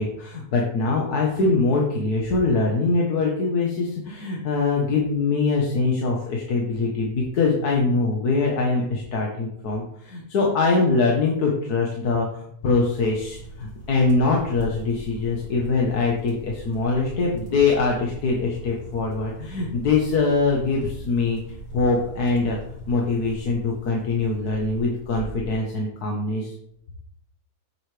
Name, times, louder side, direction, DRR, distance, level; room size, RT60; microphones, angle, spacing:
voice 1, 0.0-21.4 21.7-22.6 22.9-26.5, left 3 dB, 70° left, -1 dB, 1.6 m, -23 dB
sound 1, 12.9-25.6, right 2 dB, 40° left, 3.2 m, -41 dB
7.9 x 7.9 x 3.3 m, 0.71 s
omnidirectional pair, 1.7 m